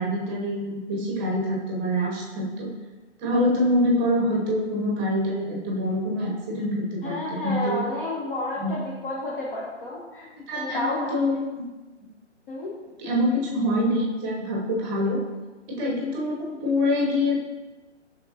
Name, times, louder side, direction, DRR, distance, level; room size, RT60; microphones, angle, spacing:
voice 1, 0.0-2.7 3.2-7.9 8.6-8.7 10.5-11.7 13.0-15.2 15.7-17.3, left 1 dB, 15° right, -2 dB, 0.8 m, -25 dB
voice 2, 7.0-11.2 12.5-12.7, left 1 dB, 45° left, -4 dB, 0.9 m, -31 dB
5.7 x 3.4 x 2.7 m, 1.2 s
figure-of-eight pair, 135°, 36 cm